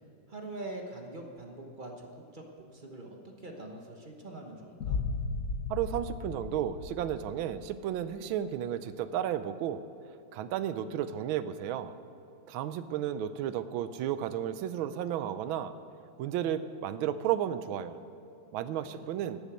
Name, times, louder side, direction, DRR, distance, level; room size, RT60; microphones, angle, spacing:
voice 1, 0.3-5.0 18.8-19.1, right 2 dB, 35° right, 1 dB, 0.9 m, -44 dB
Boom, 4.8-7.8, left 4 dB, 55° left, 1.0 m, -35 dB
voice 2, 5.7-9.8 10.3-11.9 12.5-15.7 16.2-18.0 18.5-19.4, right 10 dB, 85° right, 13 dB, 1.4 m, -33 dB
11.5 x 7.1 x 8.2 m, 2.9 s
omnidirectional pair, 2.2 m